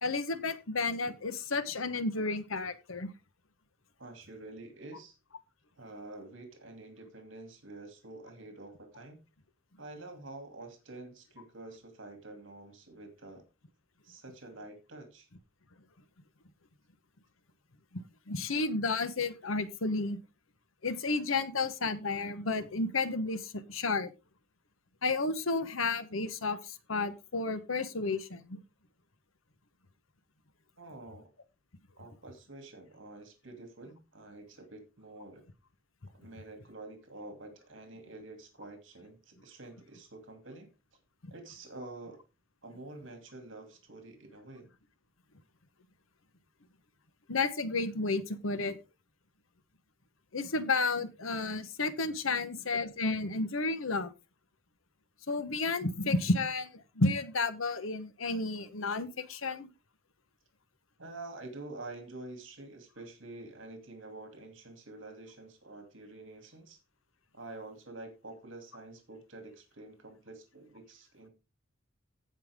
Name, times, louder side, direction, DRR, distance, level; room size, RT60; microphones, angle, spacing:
voice 1, 0.0-3.1 18.3-20.2 20.8-24.1 25.0-28.6 41.2-41.3 47.3-48.8 50.3-54.1 55.3-56.7 57.0-59.7, left 3 dB, 85° left, 13 dB, 1.1 m, -32 dB
voice 2, 4.0-5.2 5.8-9.2 9.8-13.4 14.0-15.3 30.8-31.3 32.0-35.4 36.1-40.7 41.3-42.2 42.6-44.7 61.0-66.8 67.3-71.3, right 2 dB, 70° right, 5 dB, 2.8 m, -48 dB
16.0 x 5.6 x 3.6 m, 0.28 s
head